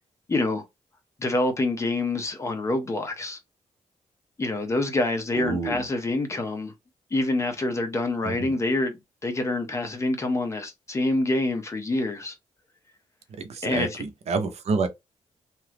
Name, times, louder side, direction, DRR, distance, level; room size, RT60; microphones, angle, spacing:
voice 1, 0.3-0.7 1.2-3.4 4.4-6.7 7.1-12.4 13.6-14.0, left 2 dB, 25° left, 0.6 m, -26 dB
voice 2, 5.3-5.9 8.2-8.5 13.4-14.9, right 4 dB, 55° right, 0.6 m, -28 dB
2.8 x 2.3 x 3.3 m
wide cardioid pair, 175°, 13 cm